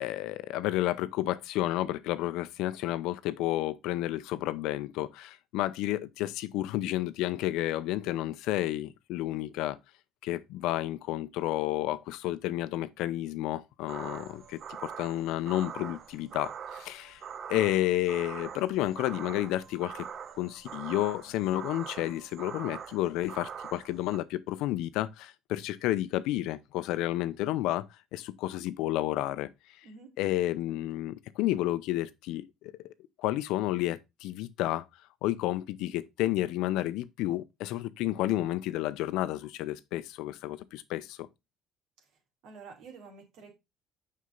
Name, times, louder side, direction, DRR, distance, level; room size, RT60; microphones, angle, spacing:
voice 1, 0.0-9.8 10.2-17.2 17.5-20.1 20.4-27.8 28.1-29.5 30.2-32.7 33.2-34.8 35.2-41.3, left 15 dB, 75° left, 0.6 m, -31 dB
sound 1, 13.9-24.2, right 7 dB, 50° right, 0.9 m, -43 dB
voice 2, 29.8-30.2 30.7-31.0 42.4-43.6, right 4 dB, 70° right, 2.8 m, -50 dB
6.4 x 5.6 x 3.8 m
supercardioid pair, 70°, 0 cm